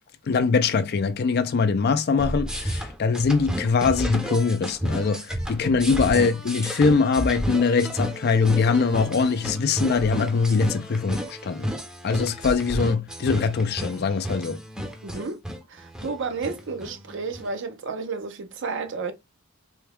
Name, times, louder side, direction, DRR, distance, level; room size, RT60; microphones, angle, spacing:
voice 1, 0.3-11.7 12.0-14.6, left 5 dB, 50° left, 0.4 m, -22 dB
sound 1, 2.2-17.5, equal, 5° right, 0.6 m, -31 dB
voice 2, 15.0-15.4 15.7-19.1, right 4 dB, 65° right, 0.6 m, -32 dB
3.4 x 2.3 x 3.4 m
head